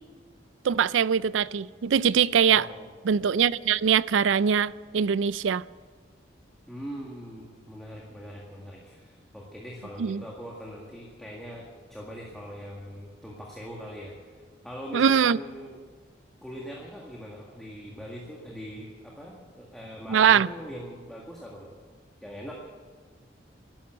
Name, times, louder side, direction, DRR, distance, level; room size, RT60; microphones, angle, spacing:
voice 1, 0.6-2.7 3.0-5.6 10.0-10.2 14.9-15.4 20.1-20.5, right 7 dB, 90° right, 0.4 m, -22 dB
voice 2, 2.5-2.9 6.7-15.8 16.4-21.7 22.2-22.5, equal, ahead, 1.8 m, -41 dB
12.0 x 12.0 x 9.1 m
head